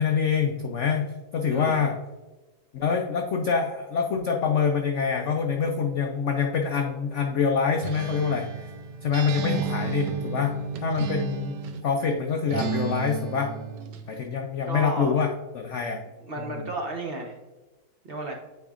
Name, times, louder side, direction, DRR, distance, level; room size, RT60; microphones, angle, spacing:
voice 1, 0.0-1.9 2.7-8.5 9.0-10.5 10.8-11.6 11.8-13.5 14.1-16.0 16.4-16.6, left 6 dB, 85° left, 3 dB, 0.6 m, -25 dB
voice 2, 1.5-1.8 14.7-15.2 16.2-17.4 18.0-18.3, right 2 dB, 50° right, 1 dB, 0.7 m, -33 dB
Acoustic guitar, 7.8-11.9 12.5-14.1, right 5 dB, 75° right, 1.2 m, -33 dB
9.3 x 4.5 x 2.4 m, 1.2 s
omnidirectional pair, 2.0 m